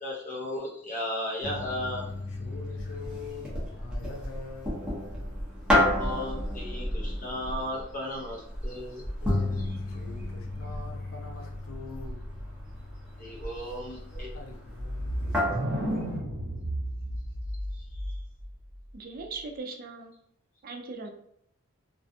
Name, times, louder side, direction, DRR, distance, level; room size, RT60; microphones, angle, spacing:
voice 1, 0.0-2.0 5.9-9.0 13.2-14.3 17.7-18.2, left 1 dB, 40° left, -3 dB, 0.8 m, -35 dB
sound 1, 1.4-16.2, left 1 dB, 5° right, 0.7 m, -32 dB
voice 2, 2.3-4.8 9.2-12.2 13.6-13.8 14.3-15.6, left 4 dB, 70° left, 2 dB, 0.5 m, -44 dB
sound 2, 14.8-18.5, equal, 60° right, 0.8 m, -32 dB
voice 3, 18.9-20.1 20.6-21.1, right 3 dB, 45° right, 3 dB, 0.3 m, -39 dB
2.4 x 2.2 x 2.6 m, 0.71 s
head